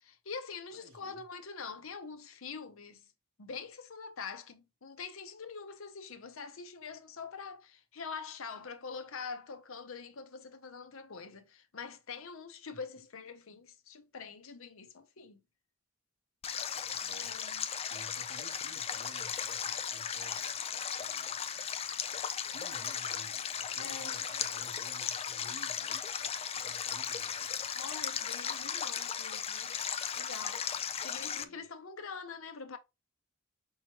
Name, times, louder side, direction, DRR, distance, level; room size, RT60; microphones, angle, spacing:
voice 1, 0.0-3.0 3.4-15.4 17.2-17.7 23.8-24.1 27.7-29.8 30.2-30.7 31.0-32.8, left 5 dB, 70° left, 0.7 m, -44 dB
voice 2, 0.7-1.3 12.7-12.8 16.9-17.4 17.8-20.6 21.0-21.4 22.4-27.8 31.4-31.7, right 1 dB, 65° right, 0.9 m, -55 dB
Stream, 16.4-31.4, left 8 dB, 30° left, 0.4 m, -36 dB
5.5 x 3.0 x 2.9 m
head